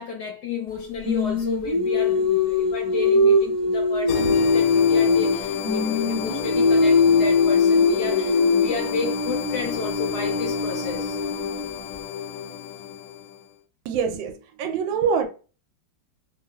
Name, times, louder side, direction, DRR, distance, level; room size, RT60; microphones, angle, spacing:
voice 1, 0.0-11.2, left 4 dB, 70° left, 1.0 m, -32 dB
Singing, 1.0-5.4 5.6-11.6, left 3 dB, 15° right, 1.1 m, -21 dB
sound 1, 4.1-13.4, left 8 dB, 90° left, 1.3 m, -30 dB
voice 2, 13.8-15.3, right 6 dB, 80° right, 1.3 m, -25 dB
3.0 x 2.4 x 2.3 m
omnidirectional pair, 2.1 m